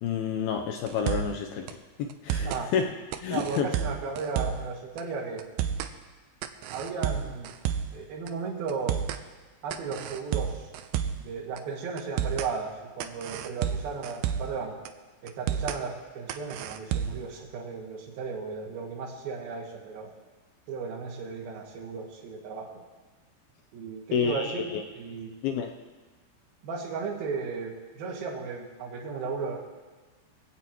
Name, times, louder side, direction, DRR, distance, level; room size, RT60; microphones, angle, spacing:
voice 1, 0.0-2.8 3.2-3.7 24.1-24.8 25.4-25.7, left 7 dB, 90° left, 3 dB, 2.1 m, -29 dB
sound 1, 0.9-1.4 1.7-1.8 2.1-2.6 3.1-4.7 5.0-5.1 5.4-5.9 6.4-8.0 8.3-8.4 8.7-9.2 9.7-11.3 11.6-11.7 12.0-12.5 13.0-14.6 14.9-15.0 15.3-15.8 16.3-17.3, right 9 dB, 80° right, 2.5 m, -31 dB
voice 2, 3.3-5.4 6.7-7.5 7.9-9.0 9.6-10.7 11.2-14.8 15.2-20.1 20.7-22.7 23.7-25.3 26.6-29.6, right 5 dB, 65° right, -3 dB, 3.1 m, -35 dB
21.0 x 16.5 x 3.0 m, 1.3 s
omnidirectional pair, 5.3 m